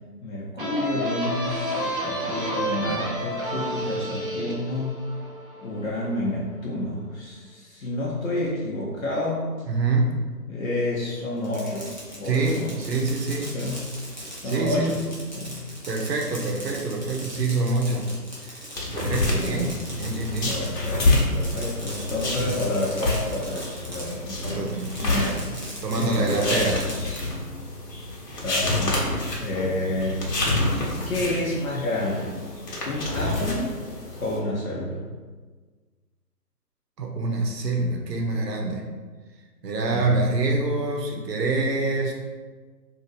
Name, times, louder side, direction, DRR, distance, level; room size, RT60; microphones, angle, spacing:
voice 1, 0.2-5.0 5.6-9.4 10.5-12.7 13.5-13.8 14.3-15.0 15.3-15.6 19.3-19.8 20.5-24.6 25.0-25.3 25.9-27.3 28.3-29.0 29.4-30.2 31.1-32.3 32.8-33.8 34.2-35.0 39.9-40.2, left 1 dB, 55° left, -5 dB, 0.8 m, -29 dB
sound 1, 0.6-6.0, equal, 35° right, 0.5 m, -30 dB
voice 2, 9.7-10.2 12.2-13.6 14.4-14.9 15.9-18.1 18.4-18.6 18.9-20.6 24.4-25.4 25.8-26.8 37.0-38.9 39.6-42.1, right 3 dB, 75° right, 1 dB, 0.8 m, -26 dB
Fireworks, 11.4-24.3 24.7-27.2, equal, 30° left, 0.4 m, -39 dB
sound 2, 18.7-34.4, left 2 dB, 70° left, 1.1 m, -28 dB
2.9 x 2.6 x 3.9 m, 1.4 s
figure-of-eight pair, 150°, 50 cm